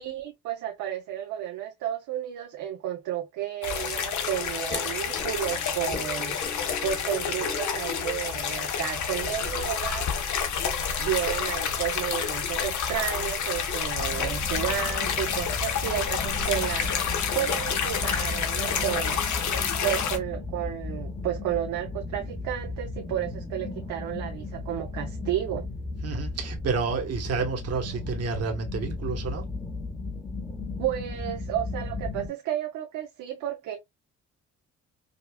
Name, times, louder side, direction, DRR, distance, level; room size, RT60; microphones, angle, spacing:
voice 1, 0.0-10.1 11.0-19.5 19.8-25.7 30.8-33.8, right 11 dB, 90° right, 0.7 m, -32 dB
sound 1, 3.6-20.2, left 7 dB, 70° left, 1.0 m, -29 dB
sound 2, 4.7-9.8, left 4 dB, 30° left, 1.5 m, -41 dB
sound 3, 14.0-32.3, left 3 dB, 15° left, 1.0 m, -35 dB
voice 2, 26.0-29.5, right 4 dB, 55° right, 1.2 m, -30 dB
5.2 x 2.4 x 2.2 m
cardioid pair, 90°, 30 cm